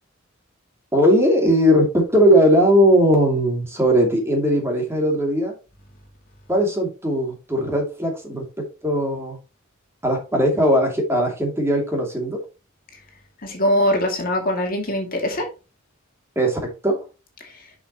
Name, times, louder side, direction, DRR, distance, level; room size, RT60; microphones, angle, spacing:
voice 1, 0.9-5.5 6.5-9.4 10.0-12.4 16.4-17.0, equal, 10° right, 2.6 m, -19 dB
voice 2, 13.4-15.5 17.4-17.6, left 1 dB, 45° left, 2.4 m, -22 dB
7.7 x 6.2 x 3.0 m
head